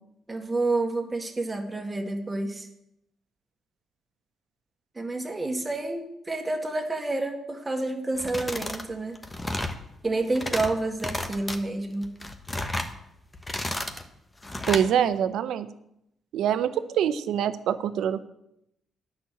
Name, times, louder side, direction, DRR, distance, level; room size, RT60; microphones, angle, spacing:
voice 1, 0.3-2.7 5.0-9.2 10.0-12.1 14.9-15.1, right 2 dB, 20° right, 3 dB, 1.9 m, -29 dB
sound 1, 8.2-8.9 9.2-9.8 10.2-10.7 11.0-11.6 12.0-12.9 13.3-14.0 14.4-14.9, left 1 dB, 15° left, 1.2 m, -32 dB
voice 2, 14.7-15.7 16.3-18.2, right 9 dB, 80° right, 13 dB, 0.7 m, -25 dB
10.0 x 6.2 x 8.2 m, 0.79 s
cardioid pair, 85°, 0 cm